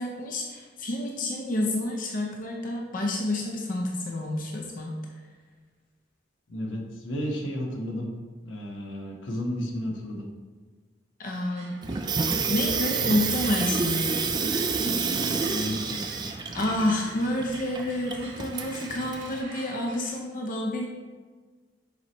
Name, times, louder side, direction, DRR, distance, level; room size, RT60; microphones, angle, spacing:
voice 1, 0.0-5.0 11.2-11.8 12.3-14.2 14.5-14.8 16.5-20.9, left 1 dB, 45° left, 0 dB, 0.7 m, -29 dB
voice 2, 6.5-8.1 8.4-10.3 15.5-16.0, equal, 80° left, 0 dB, 1.0 m, -32 dB
sound 1, 11.2-20.2, right 2 dB, 75° right, 1.4 m, -45 dB
Water tap faucet / Sink (filling or washing), 11.8-19.4, right 5 dB, 25° right, 0.3 m, -29 dB
7.1 x 4.5 x 3.0 m, 1.4 s
head